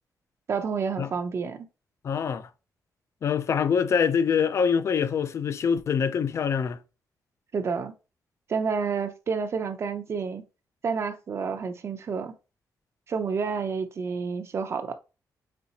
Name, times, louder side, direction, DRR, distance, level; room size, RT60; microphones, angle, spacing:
voice 1, 0.5-1.7 7.5-7.9 8.5-10.4 10.8-12.3 13.1-14.9, right 5 dB, 40° right, 0.5 m, -29 dB
voice 2, 2.0-2.5 3.2-6.8, left 6 dB, 45° left, 0.4 m, -24 dB
4.3 x 3.6 x 2.8 m
wide cardioid pair, 160°, 7 cm